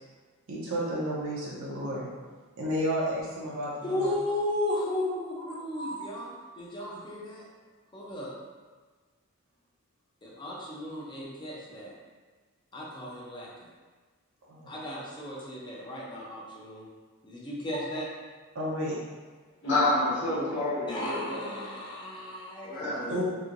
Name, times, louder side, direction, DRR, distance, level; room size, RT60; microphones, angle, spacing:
voice 1, 0.5-2.1 2.6-4.1 5.7-6.0 6.8-6.9 14.5-14.7 18.5-19.0 23.1-23.2, equal, 65° right, -6 dB, 0.5 m, -32 dB
voice 2, 3.8-7.5 7.9-8.3 10.2-11.9 12.7-13.7 14.7-16.9 17.2-18.1 20.9-23.2, left 1 dB, 20° left, -4 dB, 0.5 m, -35 dB
voice 3, 19.6-21.5 22.6-23.2, left 2 dB, 55° left, -11 dB, 1.2 m, -28 dB
3.0 x 2.6 x 2.5 m, 1.4 s
head